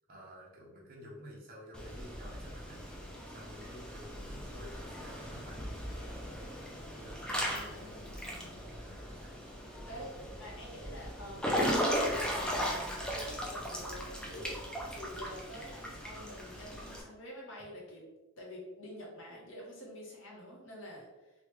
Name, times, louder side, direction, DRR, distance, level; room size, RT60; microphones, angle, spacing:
voice 1, 0.1-2.9 3.3-5.8 6.7-8.0 8.7-9.4 10.2-10.6 12.7-12.8, equal, 45° right, -4 dB, 0.8 m, -52 dB
Water / Splash splatter / Drip, 1.7-17.0, equal, 5° left, 0.4 m, -37 dB
voice 2, 7.3-8.5 8.8-8.9 9.8-10.1 10.4-18.1 18.4-21.3, equal, 65° left, -3 dB, 1.0 m, -48 dB
3.2 x 2.3 x 3.1 m, 1.1 s
head